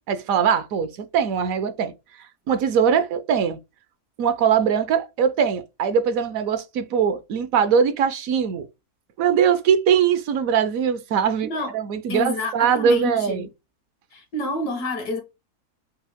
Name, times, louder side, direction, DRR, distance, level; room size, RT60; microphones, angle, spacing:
voice 1, 0.1-1.9 2.5-3.6 4.2-8.7 9.2-11.5 11.7-13.5, right 7 dB, 70° right, 1.0 m, -21 dB
voice 2, 11.4-11.7 12.1-13.5 14.1-15.2, left 2 dB, 85° left, 1.9 m, -28 dB
5.5 x 2.7 x 3.5 m
omnidirectional pair, 1.6 m